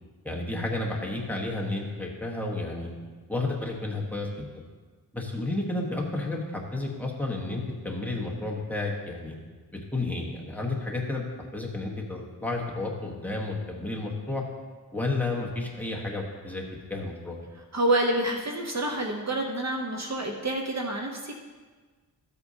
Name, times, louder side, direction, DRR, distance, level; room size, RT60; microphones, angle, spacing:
voice 1, 0.2-2.9 3.3-4.6 5.1-9.3 9.9-11.3 11.5-14.4 14.9-16.6 16.9-17.4, left 2 dB, 5° left, -1 dB, 1.2 m, -31 dB
voice 2, 17.7-21.3, right 1 dB, 45° right, 1 dB, 0.8 m, -28 dB
13.5 x 8.0 x 2.8 m, 1.4 s
wide cardioid pair, 150°, 39 cm